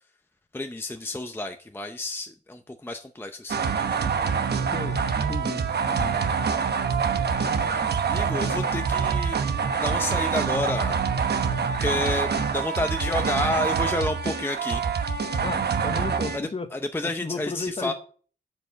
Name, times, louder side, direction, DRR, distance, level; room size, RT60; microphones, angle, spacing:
voice 1, 0.5-4.0 7.7-7.8 8.1-9.4 9.8-11.4 11.8-14.8 16.3-17.9, left 2 dB, 10° left, 0.7 m, -30 dB
sound 1, 3.5-16.4, right 6 dB, 65° right, 1.0 m, -25 dB
voice 2, 5.3-6.2 15.4-16.7 17.0-17.9, left 3 dB, 30° left, 1.1 m, -34 dB
9.6 x 5.4 x 7.5 m
wide cardioid pair, 115°, 18 cm